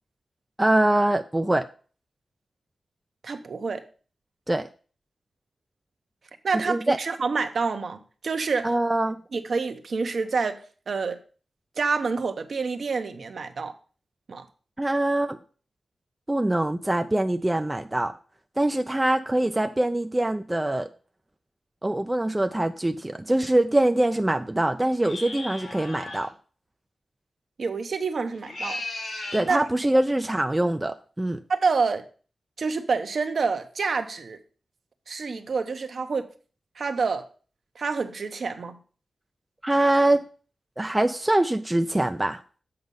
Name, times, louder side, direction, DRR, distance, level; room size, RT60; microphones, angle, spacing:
voice 1, 0.6-1.7 4.5-4.7 6.5-7.0 8.6-9.2 14.8-15.4 16.3-18.1 18.6-20.9 21.8-26.3 29.3-31.4 39.6-40.2 40.8-42.4, right 1 dB, 15° right, 0.4 m, -23 dB
voice 2, 3.2-3.8 6.4-8.7 9.3-10.6 10.9-11.2 11.8-13.7 14.3-14.5 27.6-28.8 29.4-29.6 31.5-32.0 32.6-34.4 35.1-36.3 36.8-37.3 37.8-38.8, right 4 dB, 60° right, 0.9 m, -27 dB
sound 1, 25.0-26.3 28.3-29.5, left 2 dB, 75° left, 2.7 m, -35 dB
7.8 x 5.3 x 5.4 m
wide cardioid pair, 145°, 0 cm